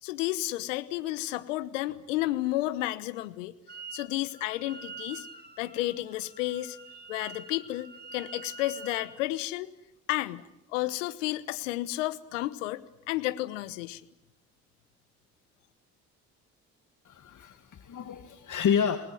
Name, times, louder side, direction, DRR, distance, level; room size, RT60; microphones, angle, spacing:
voice 1, 0.0-3.5 3.9-5.3 5.6-6.8 7.1-9.7 10.1-10.4 10.7-14.0, left 16 dB, 90° left, 15 dB, 1.1 m, -32 dB
Wind instrument woodwind instrument, 3.7-4.1 4.3-9.2, right 4 dB, 25° right, 5.4 m, -46 dB
voice 2, 17.0-19.0, left 7 dB, 55° left, 7 dB, 2.2 m, -29 dB
27.5 x 20.0 x 9.2 m, 0.87 s
hypercardioid pair, 50°, 36 cm